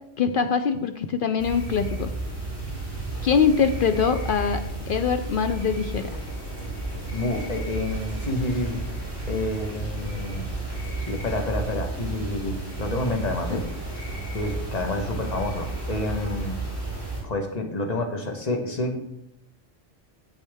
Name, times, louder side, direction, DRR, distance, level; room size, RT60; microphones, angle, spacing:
voice 1, 0.2-2.1 3.2-6.1 13.5-13.6, left 6 dB, 60° left, 9 dB, 0.6 m, -23 dB
sound 1, 1.4-17.2, right 2 dB, 20° left, 2.4 m, -32 dB
voice 2, 7.1-10.5 11.1-13.7 14.3-16.6 17.2-19.0, left 2 dB, 35° left, 4 dB, 1.1 m, -29 dB
8.3 x 7.4 x 3.5 m, 0.82 s
omnidirectional pair, 1.2 m